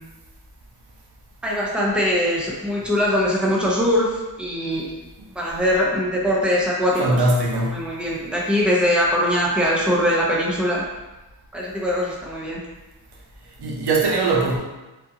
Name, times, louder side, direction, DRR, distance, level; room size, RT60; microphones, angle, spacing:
voice 1, 1.4-4.8 5.4-7.2 7.6-10.8 11.5-12.6, equal, 5° right, -4 dB, 0.6 m, -22 dB
voice 2, 7.0-7.8 13.6-14.6, right 2 dB, 90° right, -3 dB, 0.8 m, -20 dB
3.5 x 2.5 x 2.7 m, 1.1 s
wide cardioid pair, 110°, 39 cm